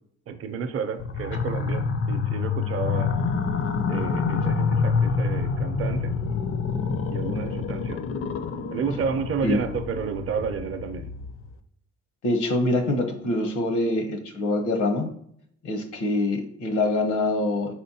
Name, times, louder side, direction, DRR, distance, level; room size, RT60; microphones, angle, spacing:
voice 1, 0.3-3.2 3.9-6.1 7.1-8.0 8.7-11.1, right 6 dB, 50° right, 8 dB, 0.6 m, -31 dB
sound 1, 1.0-11.5, left 5 dB, 45° left, 0.5 m, -27 dB
voice 2, 12.2-15.1 15.6-17.7, left 2 dB, 80° left, 6 dB, 0.9 m, -24 dB
4.4 x 4.0 x 2.7 m, 0.70 s
cardioid pair, 90°, 30 cm